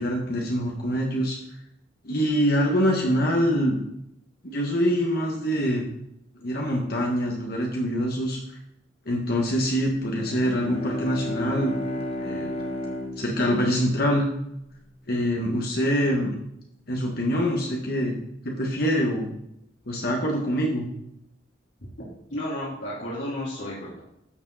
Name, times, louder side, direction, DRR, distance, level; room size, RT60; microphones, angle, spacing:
voice 1, 0.0-1.4 2.0-3.8 4.4-5.8 6.4-8.6 9.0-11.8 12.2-12.5 13.2-14.3 15.1-16.4 16.9-18.2 18.4-19.3 19.9-20.9, equal, 55° left, -1 dB, 1.7 m, -24 dB
Bowed string instrument, 10.1-14.7, left 1 dB, 30° left, 1.5 m, -33 dB
voice 2, 22.3-24.0, left 1 dB, 70° left, -8 dB, 3.6 m, -32 dB
12.0 x 7.5 x 4.1 m, 0.81 s
head